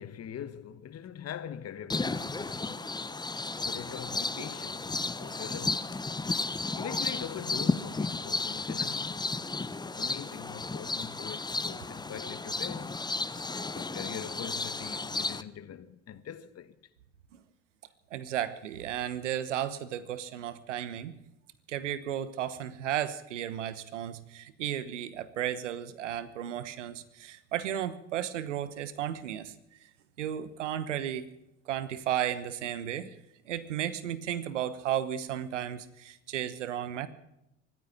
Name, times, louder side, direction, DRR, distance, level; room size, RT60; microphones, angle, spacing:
voice 1, 0.0-2.9 3.6-5.9 6.7-9.3 9.8-13.0 13.7-16.7, left 9 dB, 45° left, 1.4 m, -42 dB
sound 1, 1.9-15.4, left 3 dB, 10° left, 0.9 m, -33 dB
voice 2, 18.1-21.1 21.7-29.5 30.2-31.3 31.7-33.1 33.5-37.1, right 11 dB, 85° right, 1.1 m, -34 dB
24.0 x 10.0 x 5.9 m
hypercardioid pair, 65°, 35 cm